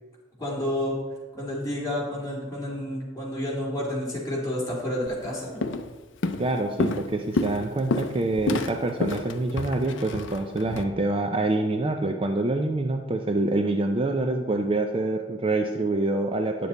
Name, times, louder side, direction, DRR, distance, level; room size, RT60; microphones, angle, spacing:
voice 1, 0.4-0.9 1.3-5.6, left 1 dB, 20° left, -6 dB, 2.5 m, -30 dB
Walk footsteps, 5.1-5.3 5.6-5.9 6.2-10.8, left 3 dB, 65° left, 0.5 m, -29 dB
voice 2, 6.4-16.7, right 2 dB, 25° right, 4 dB, 0.5 m, -26 dB
9.3 x 7.0 x 4.1 m, 1.2 s
head